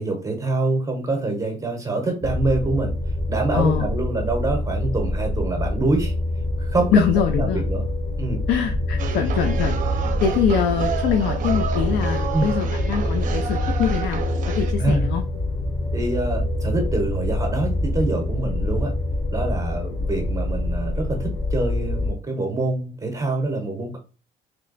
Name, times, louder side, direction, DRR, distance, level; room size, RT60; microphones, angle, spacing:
voice 1, 0.0-2.9 3.3-6.1 6.6-7.0 7.3-7.9 8.2-8.4 12.3-12.5 14.8-15.0 15.9-18.9 19.3-24.0, right 2 dB, 20° right, 3 dB, 0.8 m, -25 dB
sound 1, 2.2-22.1, left 1 dB, 30° left, 0.8 m, -25 dB
voice 2, 3.5-3.9 6.9-7.6 8.5-9.8 10.2-14.2 14.5-15.2, left 8 dB, 80° left, 5 dB, 0.5 m, -23 dB
sound 2, 9.0-14.7, right 7 dB, 50° right, 0.5 m, -30 dB
3.3 x 2.1 x 3.9 m, 0.33 s
cardioid pair, 110°, 17 cm